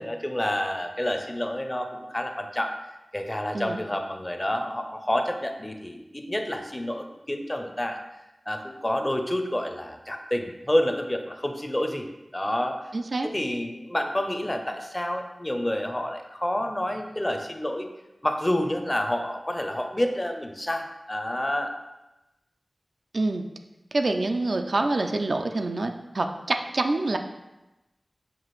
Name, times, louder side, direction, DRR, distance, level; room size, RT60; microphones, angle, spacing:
voice 1, 0.0-2.7 3.1-8.0 8.5-12.8 13.2-17.9 18.2-21.7, left 1 dB, 25° left, 5 dB, 0.5 m, -29 dB
voice 2, 12.9-13.3 23.1-23.4 23.9-27.2, right 2 dB, 70° right, 5 dB, 0.3 m, -26 dB
5.8 x 2.4 x 3.1 m, 1.0 s
cardioid pair, 40°, 0 cm